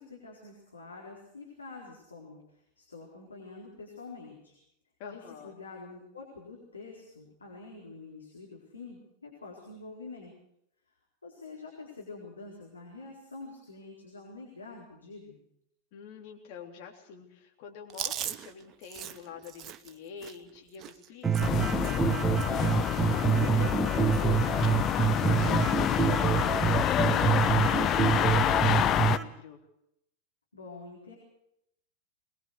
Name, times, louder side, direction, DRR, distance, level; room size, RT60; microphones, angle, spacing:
voice 1, 0.0-4.6 5.1-10.3 11.2-15.4 30.5-31.1, left 3 dB, 75° left, -2 dB, 4.4 m, -46 dB
voice 2, 5.0-5.5 15.9-29.6, left 7 dB, 45° left, 3 dB, 3.5 m, -47 dB
Chewing mastication, 17.9-22.1 22.4-22.7 22.9-23.9 24.1-24.4 24.7-25.4 25.8-25.9 27.0-27.4, right 10 dB, 30° right, 0.9 m, -41 dB
sound 1, 21.2-29.2, right 7 dB, 15° right, 1.3 m, -27 dB
sound 2, 21.4-29.2, left 10 dB, 30° left, 0.8 m, -27 dB
22.5 x 21.0 x 6.6 m, 0.79 s
figure-of-eight pair, 90°, 0 cm